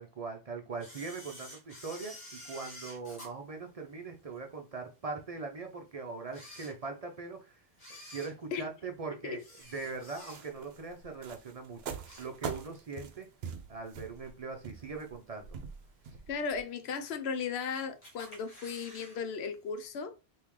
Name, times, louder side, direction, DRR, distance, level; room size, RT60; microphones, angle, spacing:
voice 1, 0.0-7.6 8.1-9.4 9.7-13.3 13.7-15.6, right 4 dB, 45° right, 0.6 m, -41 dB
Camera, 0.8-4.4 4.9-5.0 5.7-5.8 6.2-7.2 7.7-10.7 11.1-11.4 11.7-12.8 13.1-13.2 14.2-14.3 14.8-15.2 15.7-15.8 15.9-16.0 16.2-16.3 17.1-17.6 18.0-19.2 19.4-19.5 19.8-19.9, equal, 40° left, 1.6 m, -50 dB
sound 1, 9.6-16.6, right 6 dB, 75° right, 0.8 m, -44 dB
voice 2, 16.3-20.1, left 5 dB, 85° left, 0.9 m, -36 dB
3.6 x 2.7 x 3.0 m
omnidirectional pair, 1.0 m